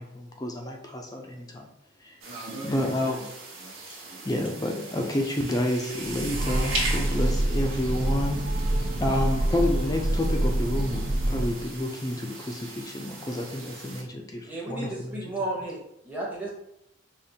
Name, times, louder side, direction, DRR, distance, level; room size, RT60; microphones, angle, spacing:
voice 1, 0.0-1.7 2.0-2.2 2.6-3.2 4.2-8.4 9.0-15.3, left 1 dB, 15° left, 2 dB, 0.4 m, -29 dB
voice 2, 2.2-3.3 3.6-5.1, right 1 dB, 70° right, -6 dB, 0.9 m, -41 dB
sound 1, 2.2-14.0, right 2 dB, 90° right, 1.3 m, -39 dB
Train, 6.0-11.8, right 1 dB, 45° right, 0.4 m, -26 dB
voice 3, 14.4-15.8 16.0-16.5, right 2 dB, 10° right, -5 dB, 0.8 m, -33 dB
5.0 x 2.5 x 2.7 m, 0.80 s
head